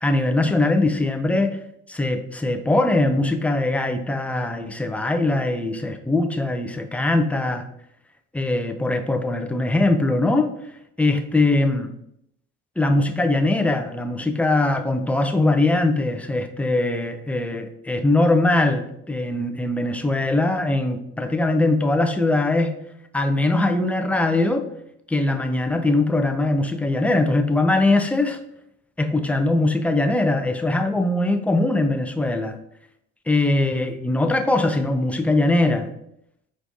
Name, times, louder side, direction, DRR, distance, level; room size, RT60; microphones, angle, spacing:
voice 1, 0.0-1.6 1.9-7.6 8.3-10.5 11.0-11.9 12.8-22.8 23.1-24.7 25.1-28.4 29.0-32.6 33.3-35.9, left 2 dB, 5° left, 6 dB, 0.5 m, -21 dB
4.8 x 3.2 x 2.6 m, 0.75 s
hypercardioid pair, 65°, 32 cm